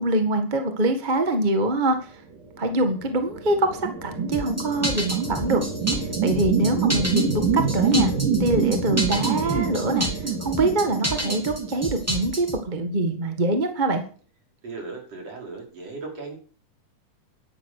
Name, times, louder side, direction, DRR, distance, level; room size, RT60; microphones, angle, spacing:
voice 1, 0.0-2.1 2.6-5.6 5.9-8.1 8.4-14.0, right 2 dB, 25° right, 6 dB, 1.0 m, -24 dB
sound 1, 2.7-12.5, right 5 dB, 80° right, 4.7 m, -26 dB
sound 2, 4.3-12.6, right 1 dB, 5° right, 2.2 m, -30 dB
voice 2, 14.6-16.3, right 3 dB, 50° right, 0 dB, 6.2 m, -37 dB
12.0 x 11.5 x 6.6 m, 0.42 s
omnidirectional pair, 3.7 m